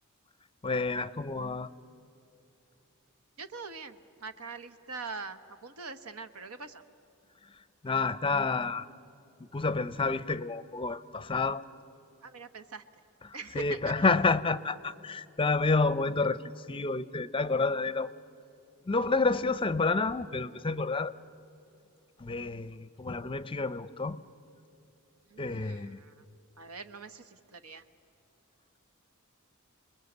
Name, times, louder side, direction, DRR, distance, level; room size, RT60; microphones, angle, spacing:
voice 1, 0.6-1.7 7.8-8.9 9.5-11.6 13.2-18.1 18.9-21.1 22.2-24.2 25.4-26.0, left 3 dB, 25° left, 16 dB, 0.5 m, -29 dB
voice 2, 3.4-6.8 12.2-12.8 13.3-14.2 25.3-26.2 26.6-27.8, right 4 dB, 85° right, 11 dB, 1.2 m, -43 dB
29.0 x 21.5 x 8.1 m, 2.9 s
head